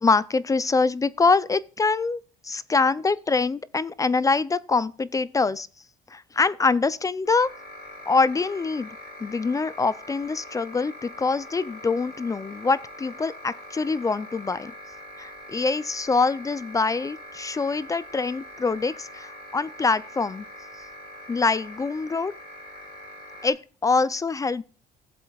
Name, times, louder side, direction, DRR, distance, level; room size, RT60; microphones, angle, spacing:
voice 1, 0.0-5.7 6.1-7.5 8.1-9.0 9.2-14.7 15.2-20.5 21.3-22.3 23.4-24.6, left 4 dB, 20° left, 0.4 m, -24 dB
sound 1, 7.3-23.5, left 1 dB, 65° left, 6.1 m, -43 dB
16.5 x 7.7 x 2.3 m
cardioid pair, 110°, 17 cm